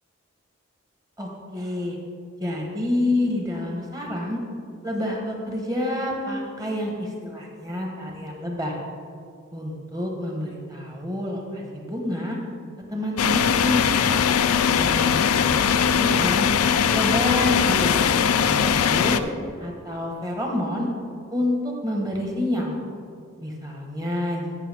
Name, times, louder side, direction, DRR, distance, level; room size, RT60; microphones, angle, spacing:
voice 1, 1.2-2.0 2.4-4.4 4.8-8.8 9.5-12.4 12.9-13.8 14.7-16.5 16.9-19.2 19.6-20.9 21.3-22.8 23.4-24.4, left 1 dB, 15° right, 0 dB, 1.2 m, -28 dB
sound 1, 13.2-19.2, left 7 dB, 85° left, 0.4 m, -20 dB
13.5 x 6.0 x 3.5 m, 2.2 s
head